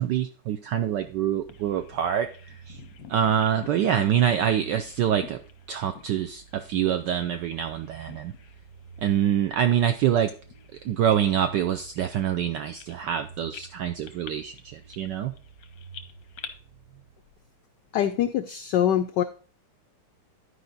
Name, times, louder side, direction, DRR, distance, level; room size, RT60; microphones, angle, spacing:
voice 1, 0.0-2.8 3.1-5.4 5.7-8.3 9.0-10.3 10.8-15.3, right 9 dB, 80° right, 8 dB, 0.9 m, -25 dB
sound 1, 0.8-17.7, right 5 dB, 55° right, 1.0 m, -50 dB
Bird vocalization bird call bird song, 1.5-7.5 7.7-8.6 9.0-9.2 9.8-13.2 13.5-16.5, left 7 dB, 65° left, 0.9 m, -47 dB
voice 2, 17.9-19.2, left 10 dB, 90° left, 10 dB, 0.9 m, -24 dB
11.5 x 4.9 x 3.9 m, 0.37 s
omnidirectional pair, 2.4 m